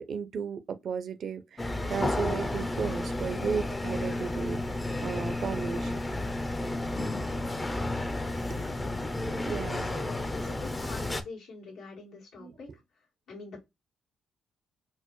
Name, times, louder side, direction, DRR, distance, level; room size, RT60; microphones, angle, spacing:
voice 1, 0.0-1.6 1.9-4.6 5.0-5.9 8.5-8.6 9.5-9.9 12.4-12.5, right 6 dB, 55° right, 0.5 m, -34 dB
sound 1, 1.6-11.2, left 2 dB, 20° left, 0.5 m, -32 dB
voice 2, 8.6-8.9 9.8-12.7 13.3-13.6, left 4 dB, 85° left, 1.7 m, -44 dB
4.4 x 2.1 x 3.0 m
cardioid pair, 90°, 0 cm